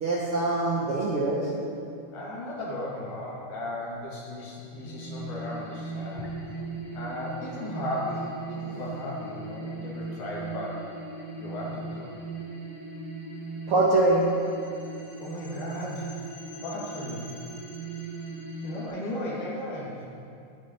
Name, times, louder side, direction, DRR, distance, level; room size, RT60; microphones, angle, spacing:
voice 1, 0.0-1.5 13.7-14.2, right 2 dB, 75° right, -4 dB, 1.3 m, -23 dB
voice 2, 2.1-6.3 6.9-10.9 11.4-12.1 15.2-16.2 16.6-17.2 18.6-20.0, left 1 dB, 80° left, -6 dB, 3.6 m, -35 dB
sound 1, 4.7-18.9, right 3 dB, 15° left, 2.0 m, -38 dB
18.5 x 7.0 x 2.9 m, 2.5 s
omnidirectional pair, 3.5 m